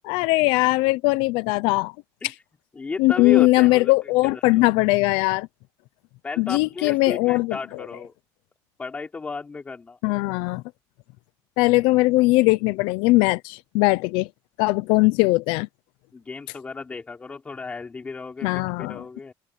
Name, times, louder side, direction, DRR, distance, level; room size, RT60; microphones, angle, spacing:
voice 1, 0.0-1.9 2.2-2.3 3.0-5.5 6.4-7.9 10.0-10.6 11.6-14.3 14.6-15.7 18.4-19.0, left 21 dB, 85° left, 0.6 m, -20 dB
voice 2, 2.8-3.9 4.3-4.7 6.2-8.1 8.8-10.0 16.1-19.3, left 4 dB, 15° left, 5.3 m, -34 dB
cardioid pair, 165°, 8 cm